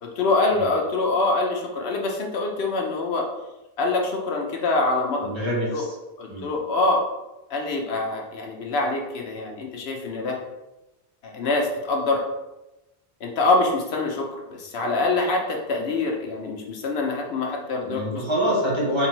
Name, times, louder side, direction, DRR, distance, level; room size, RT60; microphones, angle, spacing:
voice 1, 0.0-3.3 3.8-5.3 5.7-5.8 6.2-7.0 7.5-10.4 11.2-12.2 13.2-18.2, left 2 dB, 85° left, 1 dB, 1.0 m, -25 dB
voice 2, 5.2-5.9 6.3-6.5 17.8-19.1, equal, 30° right, -6 dB, 1.2 m, -25 dB
3.6 x 3.3 x 3.0 m, 1.0 s
omnidirectional pair, 1.0 m